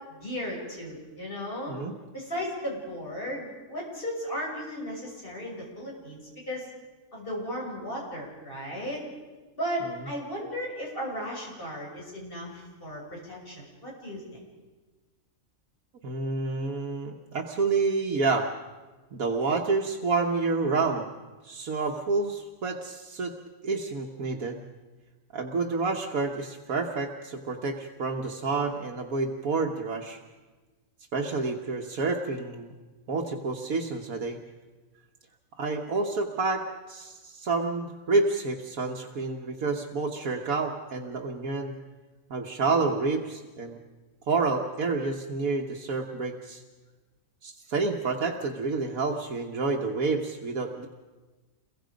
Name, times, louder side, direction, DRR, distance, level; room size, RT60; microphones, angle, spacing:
voice 1, 0.1-1.7 2.1-6.2 6.5-6.7 7.1-9.0 9.6-14.2, equal, 40° left, -3 dB, 7.1 m, -35 dB
voice 2, 16.0-18.5 19.1-21.1 21.4-23.4 23.6-24.6 25.3-30.2 31.1-32.7 33.1-34.4 35.6-41.7 42.3-43.8 44.3-46.6 47.4-50.9, right 3 dB, 85° right, 1 dB, 1.7 m, -29 dB
29.0 x 22.5 x 5.2 m, 1.3 s
omnidirectional pair, 1.4 m